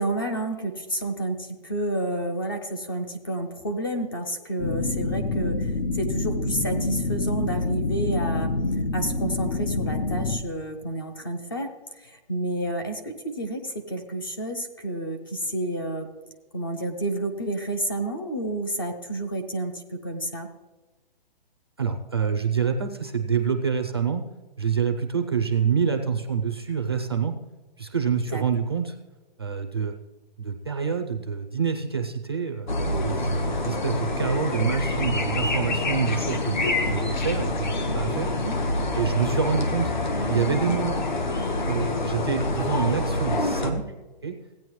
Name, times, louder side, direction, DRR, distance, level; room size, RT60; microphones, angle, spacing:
voice 1, 0.0-8.5 8.9-11.7 12.0-16.1 16.5-20.5 28.3-28.4 38.4-38.5, right 1 dB, 25° left, 6 dB, 0.6 m, -30 dB
sound 1, 4.6-10.4, left 3 dB, 70° left, 1.1 m, -27 dB
voice 2, 21.8-24.2 24.6-27.3 27.8-29.0 29.4-29.9 30.4-32.8 33.0-38.3 38.9-39.9 40.3-41.1 41.7-43.8 44.2-44.4, right 6 dB, 25° right, 6 dB, 0.5 m, -26 dB
sound 2, 32.7-43.7, left 2 dB, 55° left, 1.3 m, -26 dB
16.0 x 9.0 x 3.1 m, 1.2 s
hypercardioid pair, 180°, 29 cm